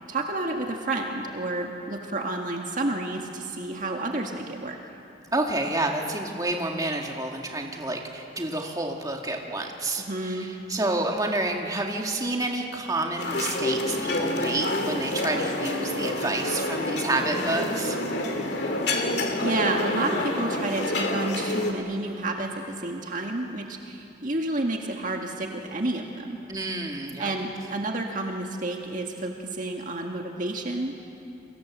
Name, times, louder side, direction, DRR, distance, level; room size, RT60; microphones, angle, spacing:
voice 1, 0.1-4.8 10.1-10.5 19.4-26.4 27.2-31.0, right 2 dB, 40° right, 2 dB, 1.7 m, -30 dB
voice 2, 5.3-18.0 26.5-27.3, right 2 dB, 20° right, 1 dB, 2.1 m, -29 dB
sound 1, 13.2-21.7, left 1 dB, 55° left, 2.7 m, -28 dB
29.0 x 24.0 x 7.5 m, 2.9 s
head